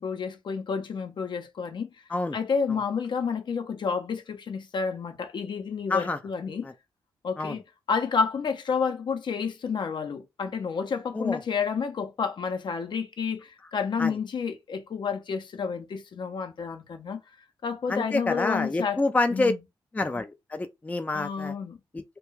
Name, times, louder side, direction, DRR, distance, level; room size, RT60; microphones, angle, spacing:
voice 1, 0.0-1.9 2.3-6.7 7.2-17.2 17.6-19.0 19.3-19.6 21.1-21.8, left 5 dB, 60° left, 0.6 m, -30 dB
voice 2, 17.9-19.5 19.9-21.5 21.9-22.0, left 2 dB, 15° left, 0.4 m, -27 dB
2.2 x 2.2 x 3.0 m
supercardioid pair, 50°, 9 cm